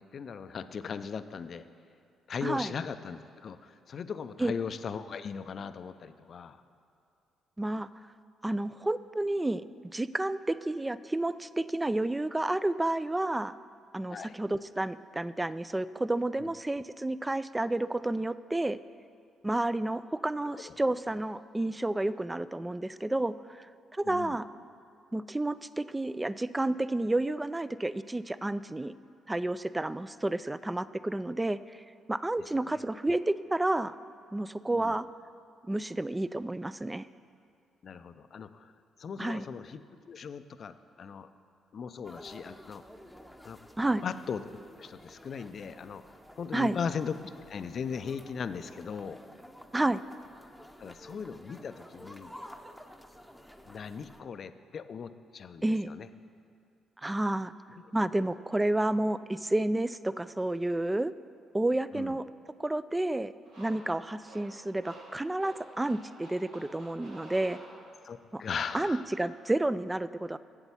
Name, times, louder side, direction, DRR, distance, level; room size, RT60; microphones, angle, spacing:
voice 1, 0.0-1.6 2.3-6.6 14.1-14.4 16.4-16.5 20.5-20.8 24.1-24.4 32.5-32.8 34.7-35.0 37.8-38.7 39.0-41.3 41.7-42.8 43.4-43.6 44.0-44.4 44.8-46.0 46.3-49.2 50.8-52.4 53.6-56.1 57.8-57.9 61.9-62.2 68.0-69.0, left 6 dB, 55° left, 11 dB, 0.4 m, -38 dB
voice 2, 2.4-2.7 4.4-4.5 7.6-7.9 8.4-13.5 13.9-18.8 19.4-23.7 23.9-24.5 25.1-28.9 29.3-31.8 32.1-33.9 34.3-35.1 35.7-37.1 39.2-39.5 43.8-44.0 46.5-46.8 49.7-50.0 55.6-55.9 57.0-57.5 57.9-61.1 61.5-62.2 62.6-63.3 63.6-67.6 68.3-68.4 68.7-70.4, right 1 dB, 15° right, 15 dB, 0.4 m, -30 dB
sound 1, 42.0-54.2, equal, ahead, 0.8 m, -51 dB
sound 2, 63.4-68.2, right 1 dB, 85° right, 2.8 m, -51 dB
8.1 x 7.9 x 7.1 m, 2.5 s
hypercardioid pair, 45°, 0 cm